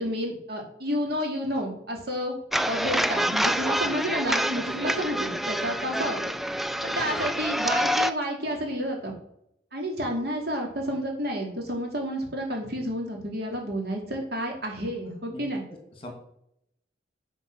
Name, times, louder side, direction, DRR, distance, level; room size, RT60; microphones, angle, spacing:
voice 1, 0.0-2.4 2.7-6.2 6.8-9.1 9.7-15.6, equal, 60° right, 1 dB, 2.9 m, -30 dB
sound 1, 2.5-8.1, equal, ahead, 0.3 m, -27 dB
voice 2, 6.9-7.3 15.1-16.1, left 1 dB, 30° left, 3 dB, 2.5 m, -44 dB
10.5 x 5.1 x 6.6 m, 0.75 s
head